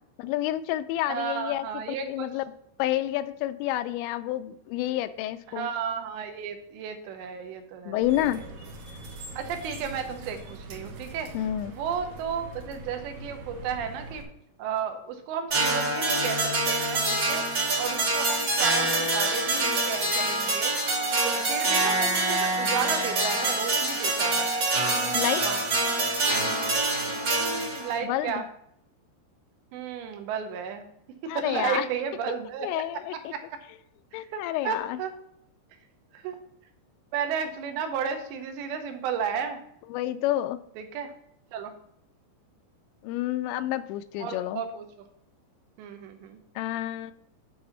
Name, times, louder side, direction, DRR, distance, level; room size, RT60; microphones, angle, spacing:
voice 1, 0.2-1.7 2.0-2.4 2.8-5.7 7.9-8.4 11.3-11.7 25.1-25.4 28.0-28.4 31.3-31.9 32.6-33.3 34.1-35.0 39.9-40.6 43.0-44.6 46.6-47.1, left 13 dB, 85° left, 12 dB, 2.8 m, -29 dB
voice 2, 1.1-2.3 5.5-8.4 9.4-11.3 11.7-14.3 14.6-20.7 21.2-24.5 25.4-25.6 27.3-28.4 29.7-30.9 31.2-32.8 33.1-33.6 34.1-35.1 36.1-36.4 37.1-39.6 40.8-41.1 41.5-41.7 44.2-44.9 45.8-46.4, right 7 dB, 80° right, 6 dB, 3.0 m, -33 dB
sound 1, 8.0-14.2, right 1 dB, 65° right, 2.4 m, -42 dB
sound 2, 15.5-28.0, right 2 dB, 40° right, 1.6 m, -25 dB
9.2 x 4.1 x 5.7 m, 0.73 s
omnidirectional pair, 5.1 m